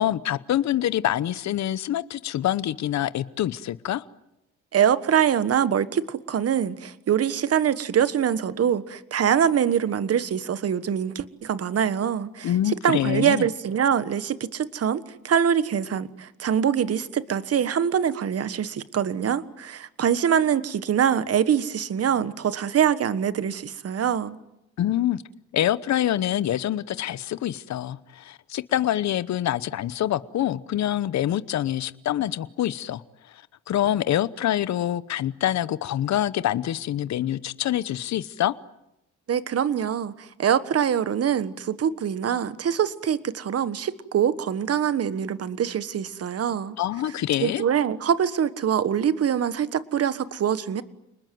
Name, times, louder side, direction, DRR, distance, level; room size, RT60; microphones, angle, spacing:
voice 1, 0.0-4.0 12.4-13.4 24.8-25.2 25.5-33.0 33.7-38.5 46.8-47.6, left 12 dB, 65° left, 16 dB, 1.0 m, -25 dB
voice 2, 4.7-24.4 39.3-46.8 47.4-50.8, right 8 dB, 50° right, 14 dB, 1.4 m, -24 dB
29.5 x 20.5 x 9.3 m, 0.86 s
cardioid pair, 90°, 30 cm